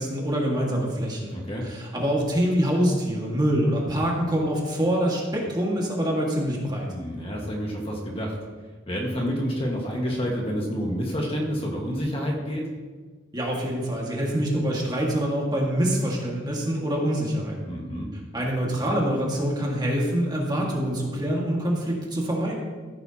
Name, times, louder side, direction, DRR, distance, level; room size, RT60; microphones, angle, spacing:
voice 1, 0.0-1.4 1.6-6.9 13.3-17.7 18.3-22.6, equal, 20° right, -2 dB, 1.9 m, -25 dB
voice 2, 1.3-1.7 6.9-8.4 8.9-12.6 17.6-18.1, equal, 30° left, -1 dB, 1.6 m, -29 dB
15.0 x 8.9 x 2.9 m, 1.4 s
head